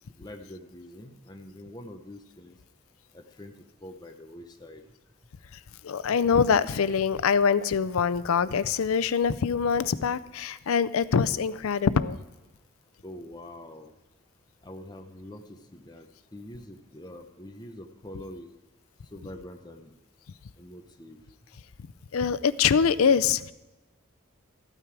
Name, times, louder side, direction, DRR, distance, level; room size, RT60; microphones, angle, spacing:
voice 1, 0.2-2.5 3.1-3.5 3.8-4.8 13.0-13.9 14.6-18.5 19.1-19.9 20.6-21.2, left 1 dB, 20° left, 4 dB, 0.8 m, -44 dB
voice 2, 5.8-12.2 22.1-23.5, left 6 dB, 85° left, 16 dB, 0.5 m, -24 dB
13.5 x 9.0 x 4.7 m, 1.1 s
head